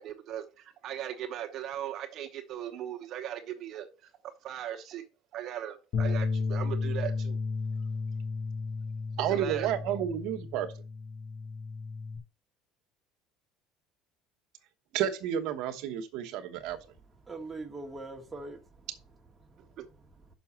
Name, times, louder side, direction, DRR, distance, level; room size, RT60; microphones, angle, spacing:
voice 1, 0.0-3.9 4.4-5.0 5.3-7.4 9.3-9.7 19.8-19.9, right 11 dB, 50° right, 1.0 m, -38 dB
Bass guitar, 5.9-12.2, left 4 dB, 45° left, 1.1 m, -33 dB
voice 2, 9.2-10.7 14.9-16.8, right 10 dB, 70° right, 1.1 m, -31 dB
voice 3, 17.3-18.9 19.4-19.8 20.1-20.2, right 2 dB, 10° right, 1.5 m, -42 dB
6.2 x 5.7 x 5.9 m
cardioid pair, 140°, 0 cm